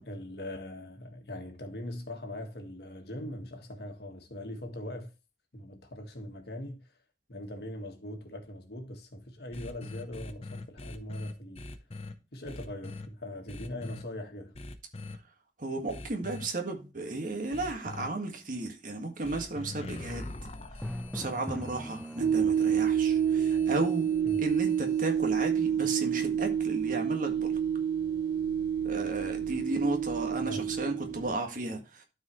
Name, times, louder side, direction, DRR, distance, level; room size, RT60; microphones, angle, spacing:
voice 1, 0.0-5.1 5.5-6.9 7.3-11.7 12.3-14.6 24.2-24.5 30.4-30.7, left 1 dB, 60° left, 1.6 m, -41 dB
sound 1, 9.5-12.1 12.5-13.1 13.5-14.0 14.5-15.2 15.9-16.5 17.5-18.1 19.2-25.1, left 2 dB, 35° left, 0.9 m, -43 dB
voice 2, 15.6-20.5 21.1-24.1 24.4-27.6 28.8-32.0, right 2 dB, 45° right, 1.7 m, -34 dB
Drum, 20.8-22.8, equal, 5° left, 0.5 m, -40 dB
sound 2, 22.2-31.3, right 8 dB, 65° right, 0.6 m, -28 dB
12.5 x 4.7 x 3.1 m
head